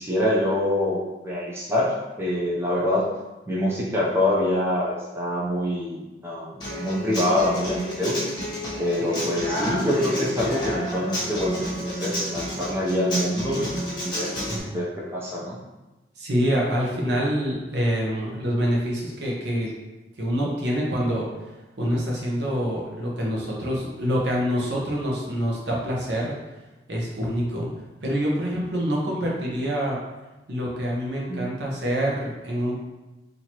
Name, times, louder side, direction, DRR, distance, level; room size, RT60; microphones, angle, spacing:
voice 1, 0.0-3.0 3.5-8.2 8.8-13.7 14.0-14.3 14.7-15.6 31.3-31.4, left 1 dB, 15° right, -6 dB, 0.6 m, -25 dB
Human voice / Acoustic guitar, 6.6-14.6, equal, 25° left, 1.0 m, -30 dB
voice 2, 16.2-19.7 20.2-21.3 21.8-26.3 26.9-27.7 28.0-30.0 30.5-32.9, equal, 70° right, -3 dB, 0.9 m, -26 dB
4.3 x 2.8 x 2.9 m, 1.1 s
head